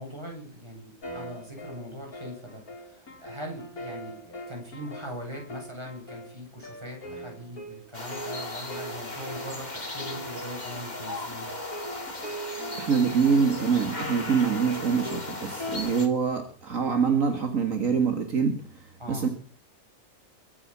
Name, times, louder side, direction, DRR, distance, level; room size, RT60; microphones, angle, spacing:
voice 1, 0.0-11.5 15.6-16.0 19.0-19.3, equal, 20° right, 0 dB, 8.1 m, -41 dB
sound 1, 1.0-15.8, equal, 85° left, 3.9 m, -41 dB
sound 2, 7.9-16.1, left 2 dB, 30° left, 2.8 m, -37 dB
voice 2, 12.7-19.3, right 6 dB, 65° right, 6 dB, 2.2 m, -25 dB
23.0 x 8.7 x 7.3 m, 0.43 s
omnidirectional pair, 1.5 m